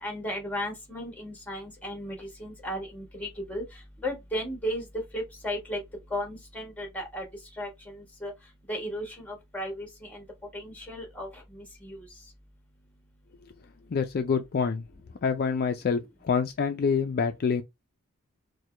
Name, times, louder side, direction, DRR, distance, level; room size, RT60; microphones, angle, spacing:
voice 1, 0.0-3.6 4.0-4.8 5.1-5.8 6.1-7.2 7.6-8.3 8.7-10.2 10.5-11.3 11.5-12.0, equal, 5° left, 1.3 m, -35 dB
voice 2, 13.9-14.8 15.2-17.6, left 5 dB, 45° left, 0.4 m, -26 dB
4.6 x 2.2 x 3.2 m
head